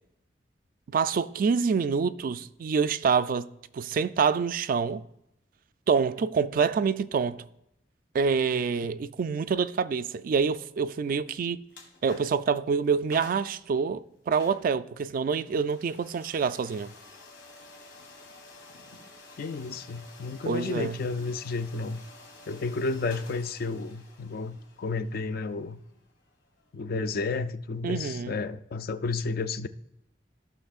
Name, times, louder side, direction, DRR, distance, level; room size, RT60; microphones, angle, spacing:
voice 1, 0.9-3.5 3.7-5.0 5.9-7.4 8.1-11.6 12.0-16.9 20.5-21.0 27.8-28.4, right 5 dB, 50° right, 0.3 m, -26 dB
sound 1, 11.7-12.5 12.8-12.9 13.1-13.6 14.3-27.0, left 3 dB, 80° left, 1.7 m, -51 dB
voice 2, 19.4-22.0 22.5-25.8 26.7-29.7, left 3 dB, 55° left, 0.4 m, -32 dB
15.0 x 6.0 x 2.4 m
head